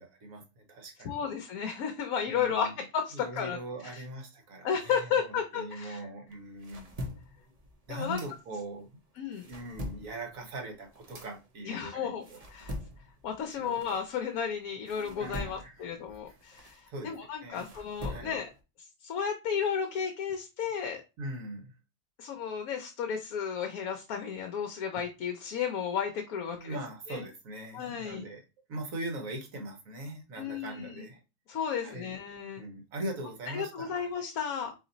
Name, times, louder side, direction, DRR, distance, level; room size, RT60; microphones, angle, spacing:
voice 1, 0.0-1.2 2.3-2.7 3.1-6.9 7.9-8.9 9.3-12.4 13.5-13.8 15.2-17.1 17.4-17.6 18.0-18.3 21.2-21.7 26.4-28.4 28.7-31.2 31.8-32.2 32.6-34.1, right 1 dB, 60° right, 3 dB, 1.4 m, -41 dB
voice 2, 1.0-4.0 4.6-6.1 7.9-8.2 9.2-9.5 11.6-12.2 12.5-12.7 13.2-18.5 19.0-21.0 22.2-26.8 27.1-27.3 27.7-28.2 30.4-31.0 31.5-32.6 33.5-34.7, left 7 dB, 70° left, 4 dB, 1.1 m, -33 dB
sound 1, 6.3-8.8 9.2-14.5 14.9-18.6, left 1 dB, 35° right, 0.6 m, -43 dB
4.1 x 3.2 x 3.9 m, 0.29 s
omnidirectional pair, 1.6 m